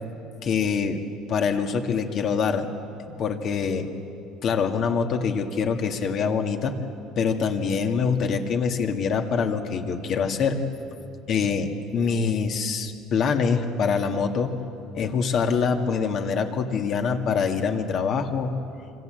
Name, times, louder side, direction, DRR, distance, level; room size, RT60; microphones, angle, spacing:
voice 1, 0.4-1.0 1.3-2.7 3.0-3.9 4.4-6.8 7.2-10.6 11.3-14.6 14.9-18.6, left 5 dB, 45° left, 5 dB, 2.0 m, -25 dB
26.0 x 25.5 x 7.9 m, 2.6 s
cardioid pair, 145°, 0 cm